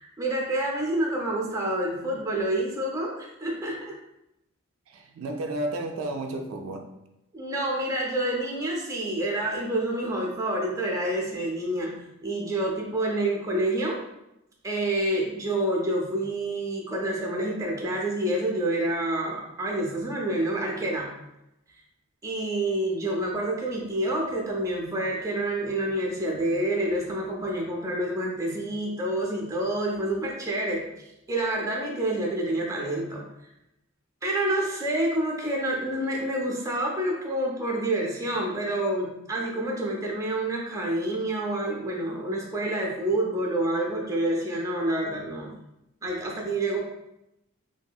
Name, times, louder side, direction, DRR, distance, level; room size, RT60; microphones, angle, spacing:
voice 1, 0.0-3.9 7.3-11.9 12.2-14.0 14.6-21.1 22.2-30.8 31.3-33.2 34.2-45.6 46.0-46.8, right 1 dB, 15° right, -2 dB, 0.5 m, -28 dB
voice 2, 4.9-6.9, right 1 dB, 75° right, 4 dB, 0.3 m, -32 dB
2.7 x 2.6 x 2.2 m, 0.88 s
head